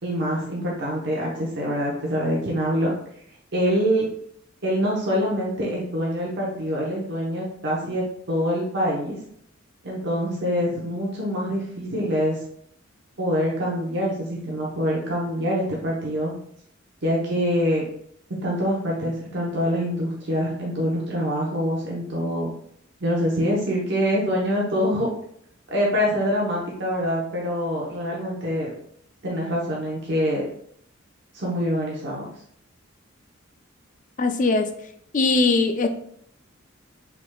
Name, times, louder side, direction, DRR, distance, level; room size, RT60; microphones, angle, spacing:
voice 1, 0.0-2.9 3.5-4.1 4.6-9.2 9.8-12.4 13.2-16.3 17.0-17.8 18.3-22.5 23.0-25.1 25.7-28.7 29.2-30.5 31.3-32.3, equal, 55° right, -4 dB, 1.0 m, -25 dB
voice 2, 34.2-34.7 35.1-35.9, left 3 dB, 40° left, 7 dB, 0.4 m, -20 dB
5.8 x 3.6 x 2.3 m, 0.67 s
head